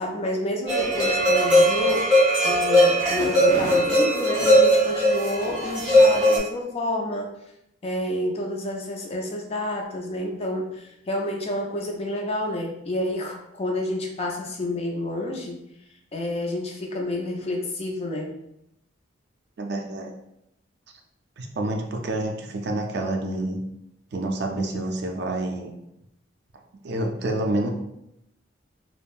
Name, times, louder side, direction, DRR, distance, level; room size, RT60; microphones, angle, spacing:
voice 1, 0.0-2.2 2.4-7.3 7.8-15.6 16.1-18.3, left 1 dB, 30° left, 0 dB, 0.4 m, -29 dB
sound 1, 0.7-6.4, equal, 5° right, 1.1 m, -19 dB
voice 2, 19.6-20.1 21.4-23.6 24.1-25.7 26.8-27.7, right 2 dB, 55° right, 2 dB, 0.4 m, -28 dB
3.5 x 2.0 x 2.4 m, 0.81 s
head